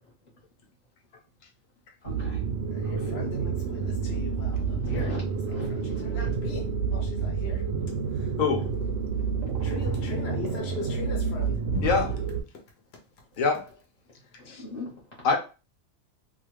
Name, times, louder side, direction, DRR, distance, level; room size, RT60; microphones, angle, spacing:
voice 1, 2.0-2.4 2.8-3.3 3.7-4.3 4.5-6.4 9.1-9.5 14.4-15.4, left 1 dB, 35° left, 1.2 m, -42 dB
sound 1, 2.1-12.4, right 5 dB, 60° right, 0.7 m, -29 dB
voice 2, 2.7-5.1 5.5-7.6 8.1-8.3 9.6-12.0, left 4 dB, 55° left, 1.0 m, -39 dB
voice 3, 8.4-8.7 11.8-12.1 13.4-13.6 14.5-14.6 15.2-15.4, left 5 dB, 80° left, 1.2 m, -24 dB
2.7 x 2.5 x 3.1 m
omnidirectional pair, 1.4 m